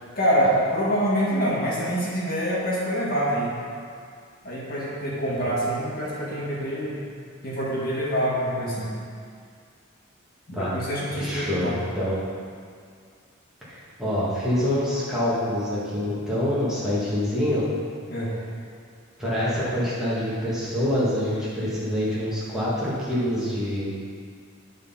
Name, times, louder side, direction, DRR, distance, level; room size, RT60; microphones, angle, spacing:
voice 1, 0.1-3.5 4.4-6.9 7.4-8.9 10.5-11.7 18.1-18.3, equal, 45° left, -6 dB, 1.6 m, -25 dB
voice 2, 11.2-12.2 13.6-17.6 19.2-23.9, left 1 dB, 5° right, -10 dB, 1.6 m, -26 dB
9.5 x 3.9 x 5.5 m, 2.2 s
head